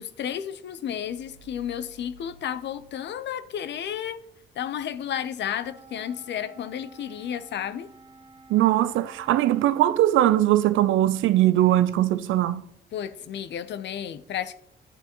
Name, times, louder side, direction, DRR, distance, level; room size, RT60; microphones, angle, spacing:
voice 1, 0.0-4.2 4.6-7.9 12.9-14.6, left 9 dB, 65° left, 0.6 m, -32 dB
sound 1, 1.0-3.9, right 1 dB, 35° left, 1.5 m, -54 dB
Wind instrument woodwind instrument, 5.6-10.0, right 2 dB, 30° right, 2.9 m, -51 dB
voice 2, 8.5-12.7, right 13 dB, 80° right, 0.5 m, -20 dB
10.5 x 8.9 x 3.0 m
cardioid pair, 90°, 20 cm